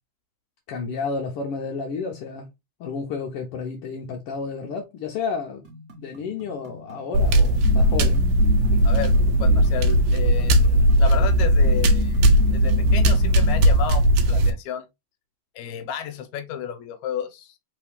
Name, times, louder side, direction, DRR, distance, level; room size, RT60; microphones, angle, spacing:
voice 1, 0.7-2.5 2.8-5.7 6.0-8.3, left 5 dB, 70° left, 1.5 m, -31 dB
sound 1, 5.6-14.1, right 2 dB, 45° right, 0.8 m, -36 dB
sound 2, 7.1-14.5, equal, 75° right, 1.5 m, -18 dB
voice 2, 9.4-12.2 12.5-14.8 15.6-17.5, left 8 dB, 85° left, 2.1 m, -32 dB
4.0 x 3.6 x 3.4 m
omnidirectional pair, 3.4 m